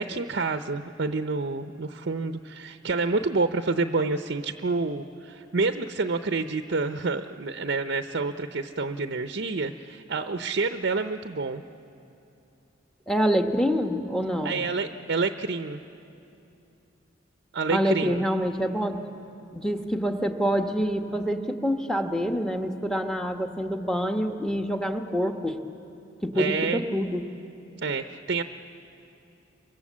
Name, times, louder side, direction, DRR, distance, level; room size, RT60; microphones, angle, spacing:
voice 1, 0.0-11.6 14.4-15.8 17.5-18.2 26.4-26.8 27.8-28.4, right 3 dB, 60° right, 8 dB, 0.7 m, -28 dB
voice 2, 13.1-14.6 17.7-19.0 19.5-25.6 26.2-27.2, equal, 5° left, 4 dB, 1.2 m, -26 dB
29.5 x 24.5 x 7.4 m, 2.8 s
head